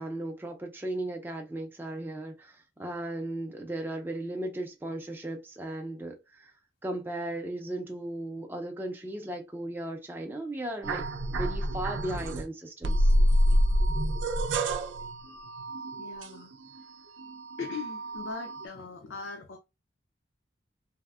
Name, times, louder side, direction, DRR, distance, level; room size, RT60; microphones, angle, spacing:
voice 1, 0.0-6.5 6.8-11.0 11.3-13.1, right 1 dB, 10° right, 0.3 m, -36 dB
sound 1, 10.8-12.5 12.8-16.8 17.2-18.7, equal, 75° right, 0.4 m, -27 dB
voice 2, 16.0-16.9 17.6-19.6, left 5 dB, 80° left, 0.4 m, -40 dB
3.4 x 2.0 x 2.3 m
head